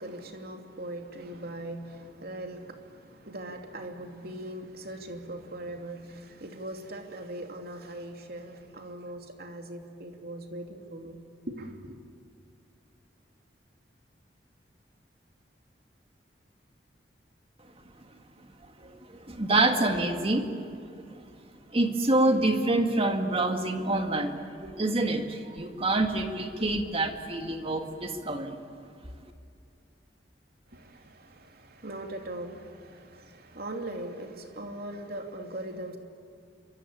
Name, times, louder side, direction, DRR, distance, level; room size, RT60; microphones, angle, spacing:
voice 1, 0.0-11.2 11.5-12.0 30.7-36.0, right 1 dB, 60° right, 2.8 m, -40 dB
voice 2, 18.8-20.8 21.1-21.2 21.7-28.6, right 2 dB, 35° right, 2.1 m, -27 dB
28.0 x 24.0 x 8.6 m
head